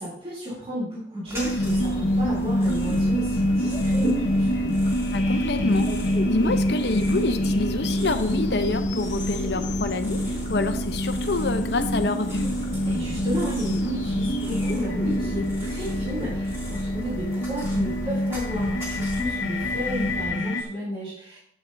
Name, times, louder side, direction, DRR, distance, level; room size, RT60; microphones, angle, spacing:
voice 1, 0.0-4.7 12.8-21.4, equal, 30° right, -8 dB, 3.0 m, -33 dB
sound 1, 1.3-20.3, equal, 15° right, 2.7 m, -35 dB
sound 2, 1.4-20.6, equal, 90° left, 0.9 m, -26 dB
sound 3, 2.7-18.7, equal, 25° left, 1.2 m, -37 dB
voice 2, 5.1-6.0 6.3-10.2 10.5-12.5, left 3 dB, 65° left, 8 dB, 0.7 m, -26 dB
11.0 x 8.1 x 2.7 m, 0.70 s
head